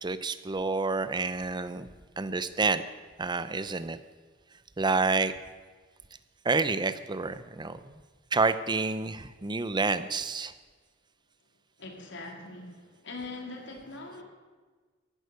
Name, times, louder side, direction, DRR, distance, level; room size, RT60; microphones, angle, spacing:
voice 1, 0.0-1.9 2.2-2.8 3.2-4.0 4.8-5.3 6.4-8.0 8.3-10.5, right 3 dB, 20° right, 13 dB, 0.6 m, -28 dB
voice 2, 11.8-14.2, left 3 dB, 65° left, 2 dB, 2.6 m, -42 dB
15.0 x 11.0 x 6.6 m, 1.4 s
head